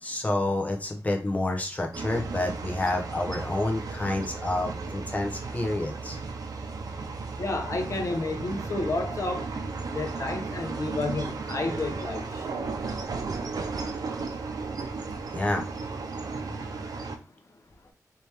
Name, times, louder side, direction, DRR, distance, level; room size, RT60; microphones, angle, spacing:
voice 1, 0.0-6.2 15.3-15.7, left 2 dB, 25° left, 0.7 m, -29 dB
sound 1, 1.9-17.2, right 4 dB, 85° right, 0.6 m, -35 dB
voice 2, 7.4-9.5 9.9-12.4, left 2 dB, 55° left, 0.8 m, -31 dB
4.6 x 2.9 x 3.4 m
wide cardioid pair, 125°, 6 cm